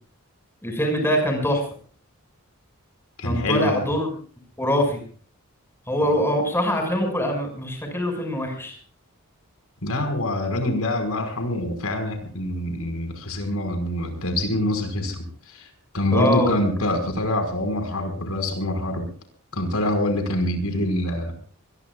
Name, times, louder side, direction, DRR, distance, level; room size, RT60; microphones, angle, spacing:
voice 1, 0.6-1.6 3.2-4.1 4.6-5.0 5.9-8.8 16.1-16.6, equal, 10° left, 3 dB, 6.1 m, -23 dB
voice 2, 3.2-3.9 9.8-15.7 15.9-19.1 19.5-21.3, left 1 dB, 75° left, 5 dB, 5.4 m, -25 dB
25.0 x 21.5 x 2.5 m, 0.43 s
head